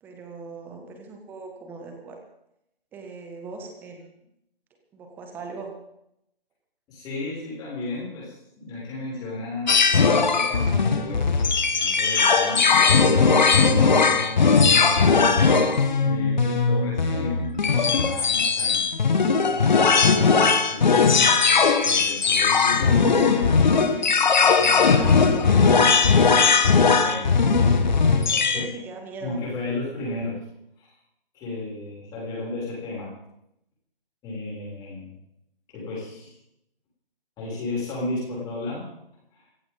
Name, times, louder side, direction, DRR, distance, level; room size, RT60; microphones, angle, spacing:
voice 1, 0.0-2.2 2.9-4.1 4.9-5.7 24.7-25.1 28.5-29.4, right 4 dB, 5° right, 3 dB, 1.3 m, -40 dB
voice 2, 6.9-11.3 11.7-15.3 16.0-18.8 19.4-20.3 20.7-23.7 24.5-26.0 26.4-27.3 28.2-28.7 29.2-30.4 30.8-30.9 31.3-33.1 34.2-35.1 35.7-36.4 37.4-38.9 39.3-39.5, left 2 dB, 15° left, -5 dB, 6.8 m, -34 dB
sound 1, 9.7-28.6, left 5 dB, 50° left, 1.8 m, -19 dB
24.5 x 15.0 x 3.9 m, 0.79 s
figure-of-eight pair, 145°, 30 cm